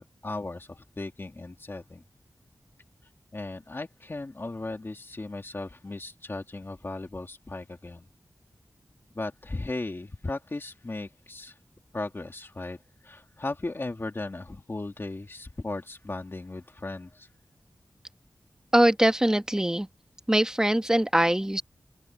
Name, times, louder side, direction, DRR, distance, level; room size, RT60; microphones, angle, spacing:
voice 1, 0.0-2.0 3.3-8.0 9.1-11.6 11.9-12.8 13.0-17.3, left 2 dB, 35° left, 2.3 m, -36 dB
voice 2, 18.7-19.9 20.3-21.6, right 1 dB, 10° right, 1.3 m, -22 dB
open air
wide cardioid pair, 75°, 6 cm